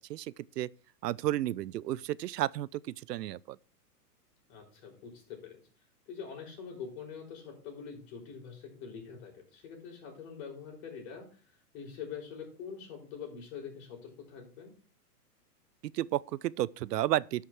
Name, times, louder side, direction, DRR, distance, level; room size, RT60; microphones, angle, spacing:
voice 1, 0.1-0.7 1.0-2.8 3.1-3.6 15.8-17.4, right 14 dB, 80° right, 0.6 m, -32 dB
voice 2, 4.5-5.6 6.1-11.4 11.7-14.7, left 6 dB, 40° left, 5.2 m, -44 dB
12.0 x 5.8 x 4.7 m
hypercardioid pair, 145°, 48 cm